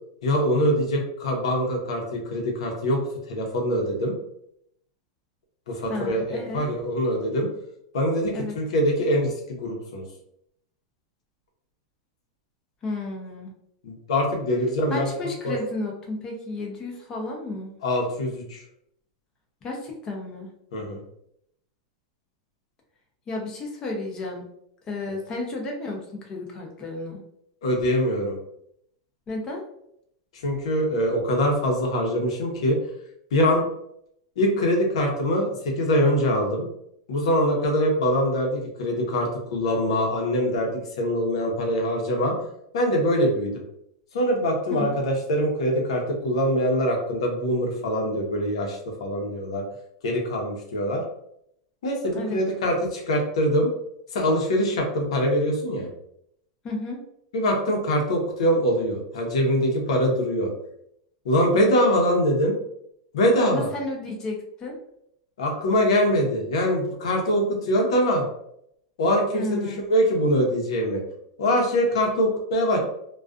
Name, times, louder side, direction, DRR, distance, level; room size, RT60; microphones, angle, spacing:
voice 1, 0.2-3.0 3.3-4.1 5.7-7.5 7.9-10.0 13.8-15.1 15.4-15.5 17.8-18.6 20.7-21.0 27.6-28.3 30.4-32.8 33.3-33.7 34.4-36.6 37.1-42.4 42.7-43.6 44.1-49.6 50.0-51.0 51.8-53.7 54.1-55.9 57.3-60.5 61.2-62.6 63.1-63.7 65.4-68.2 69.0-71.0 71.4-72.8, equal, 85° left, 1 dB, 0.8 m, -23 dB
voice 2, 5.9-6.6 8.3-8.6 12.8-13.5 14.9-17.7 19.6-20.5 23.3-24.5 24.9-27.2 29.3-29.6 44.8-45.0 52.1-52.4 56.6-57.0 63.4-64.8 69.3-69.9, left 2 dB, 25° left, 1 dB, 0.6 m, -32 dB
2.4 x 2.3 x 2.4 m, 0.73 s
supercardioid pair, 155°, 3 cm